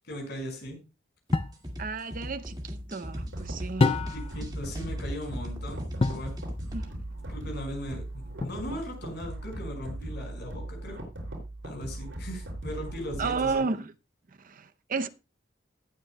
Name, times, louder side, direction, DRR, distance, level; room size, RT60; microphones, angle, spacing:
voice 1, 0.1-0.8 4.1-6.3 7.3-11.0 11.6-13.7, equal, 60° left, 5.2 m, -38 dB
sound 1, 1.3-1.6 3.8-4.4 6.0-6.3 8.4-8.9, left 3 dB, 30° left, 0.5 m, -27 dB
sound 2, 1.3-6.8, equal, 20° right, 2.0 m, -38 dB
voice 2, 1.8-4.1 6.7-6.9 13.2-13.9 14.4-15.1, right 4 dB, 45° right, 0.6 m, -32 dB
sound 3, 3.2-13.6, right 1 dB, 85° right, 5.2 m, -39 dB
18.5 x 9.2 x 2.2 m
head